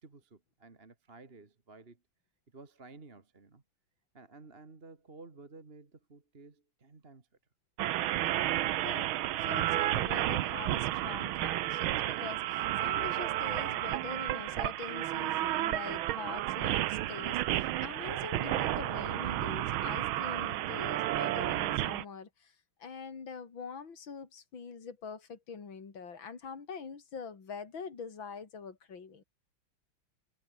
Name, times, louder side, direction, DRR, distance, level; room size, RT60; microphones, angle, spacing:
voice 1, 0.0-2.0 2.5-3.6 4.1-7.3, right 3 dB, 30° right, 2.2 m, -53 dB
sound 1, 7.8-22.0, right 14 dB, 80° right, 1.6 m, -32 dB
voice 2, 8.8-29.2, left 5 dB, 70° left, 3.8 m, -44 dB
omnidirectional pair, 2.2 m